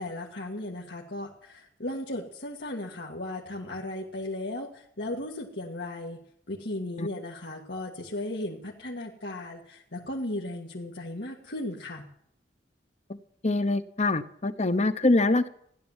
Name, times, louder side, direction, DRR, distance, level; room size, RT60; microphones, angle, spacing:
voice 1, 0.0-6.2 6.5-12.1, left 1 dB, 85° left, -3 dB, 2.0 m, -36 dB
voice 2, 13.4-15.5, left 2 dB, 40° left, 12 dB, 0.9 m, -24 dB
15.5 x 11.0 x 7.4 m, 0.70 s
head